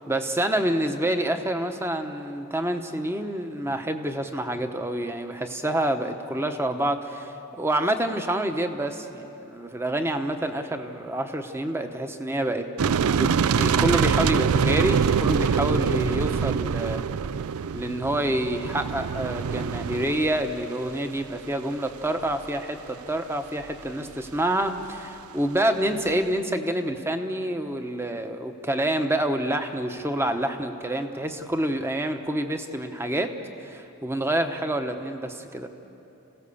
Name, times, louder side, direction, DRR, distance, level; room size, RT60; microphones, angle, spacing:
voice 1, 0.1-12.7 13.2-17.1 17.7-33.3 33.6-35.7, right 1 dB, 10° right, 7 dB, 1.0 m, -27 dB
sound 1, 12.8-20.6 20.9-21.0 21.2-21.3, right 6 dB, 85° right, 0.4 m, -24 dB
26.5 x 16.5 x 7.1 m, 3.0 s
head